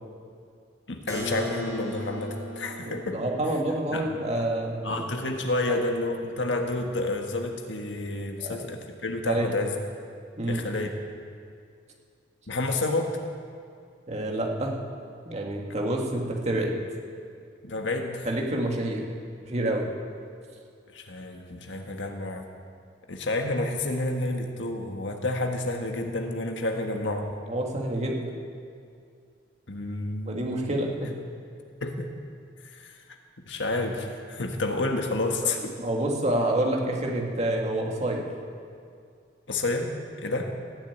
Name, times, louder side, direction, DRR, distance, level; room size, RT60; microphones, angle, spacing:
voice 1, 0.9-3.2 3.9-4.0 4.8-9.8 10.5-10.9 12.5-13.2 17.6-18.3 20.9-22.4 23.1-27.4 29.7-30.7 31.8-32.1 32.6-33.0 33.4-35.8 39.5-40.6, left 2 dB, 85° left, 4 dB, 1.5 m, -30 dB
Keyboard (musical), 1.1-6.7, equal, 20° right, 4.5 m, -40 dB
voice 2, 2.9-4.9 5.7-5.8 8.4-8.5 9.3-9.5 10.4-10.6 14.1-14.8 15.3-16.8 18.3-19.0 19.4-19.9 27.5-28.3 30.3-31.1 35.4-35.5 35.8-38.3, right 1 dB, 40° right, 0 dB, 2.1 m, -28 dB
15.5 x 7.4 x 9.2 m, 2.3 s
head